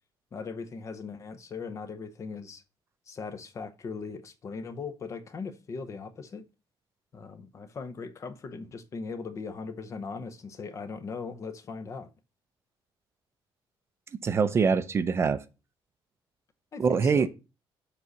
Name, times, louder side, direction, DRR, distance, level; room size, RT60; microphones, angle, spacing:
voice 1, 0.3-2.6 3.1-6.5 7.1-12.1 16.7-17.3, left 4 dB, 35° left, 0.8 m, -39 dB
voice 2, 14.2-15.4 16.8-17.3, right 5 dB, 30° right, 0.5 m, -24 dB
7.4 x 4.1 x 6.4 m
cardioid pair, 170°, 9 cm